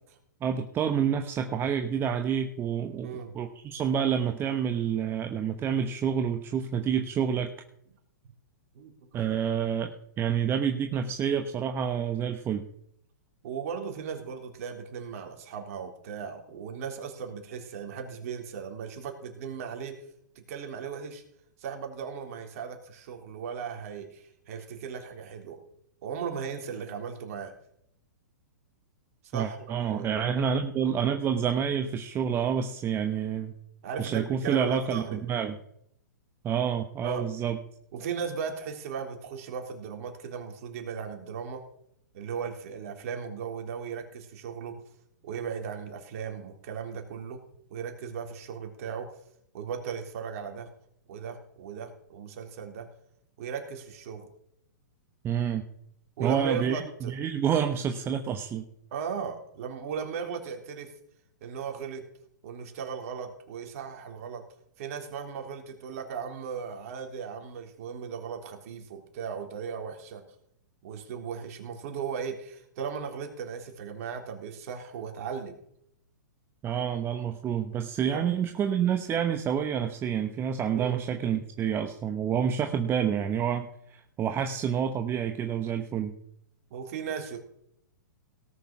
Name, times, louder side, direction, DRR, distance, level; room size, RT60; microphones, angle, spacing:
voice 1, 0.4-7.5 9.1-12.7 29.3-33.5 34.0-35.6 36.4-37.6 55.2-55.6 56.2-58.7 76.6-86.1, right 8 dB, 25° right, 6 dB, 1.1 m, -28 dB
voice 2, 3.0-3.4 8.7-9.0 13.4-20.0 20.5-21.2 21.6-25.6 26.0-27.5 29.3-30.1 33.8-35.2 37.0-37.3 37.9-41.6 42.1-44.8 45.2-47.4 47.7-49.1 49.5-50.7 51.1-52.9 53.4-54.3 56.2-57.1 58.9-60.9 61.4-62.0 62.4-64.4 64.8-70.2 70.8-75.6 78.1-78.2 80.7-81.0 86.7-87.4, right 6 dB, 50° right, 3 dB, 3.5 m, -37 dB
18.0 x 6.7 x 6.2 m, 0.71 s
hypercardioid pair, 120°, 10 cm